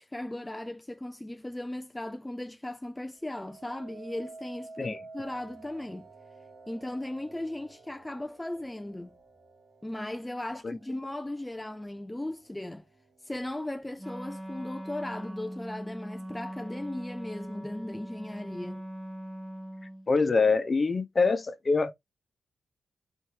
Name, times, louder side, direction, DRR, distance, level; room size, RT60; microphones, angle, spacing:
voice 1, 0.0-6.1 6.7-9.2 9.8-12.8 13.2-18.8, left 1 dB, 15° left, 0.3 m, -37 dB
sound 1, 3.2-12.4 12.9-13.4, right 3 dB, 60° right, 0.9 m, -51 dB
Wind instrument woodwind instrument, 14.0-20.1, equal, 15° right, 0.9 m, -41 dB
voice 2, 20.1-21.9, left 4 dB, 45° left, 0.8 m, -25 dB
4.4 x 3.2 x 2.8 m
supercardioid pair, 45°, 0 cm